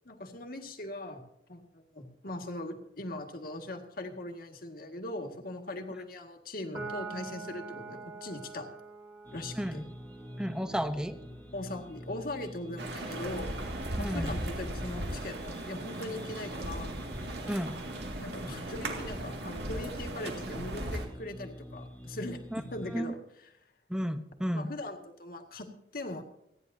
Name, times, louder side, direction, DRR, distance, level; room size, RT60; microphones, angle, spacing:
voice 1, 0.1-1.2 1.5-8.7 9.3-9.8 11.5-13.5 14.0-16.9 18.2-23.2 24.5-26.2, left 1 dB, 55° left, 5 dB, 1.8 m, -40 dB
Piano, 6.7-13.4, right 4 dB, 20° right, 2.5 m, -46 dB
sound 1, 9.2-23.0, equal, 10° left, 1.1 m, -47 dB
voice 2, 10.4-11.2 14.0-14.3 17.5-17.7 22.5-22.6 22.9-23.1 23.9-24.7, equal, 5° right, 9 dB, 0.8 m, -32 dB
sound 2, 12.8-21.1, right 1 dB, 70° right, 2.1 m, -37 dB
29.0 x 10.0 x 2.7 m, 0.83 s
head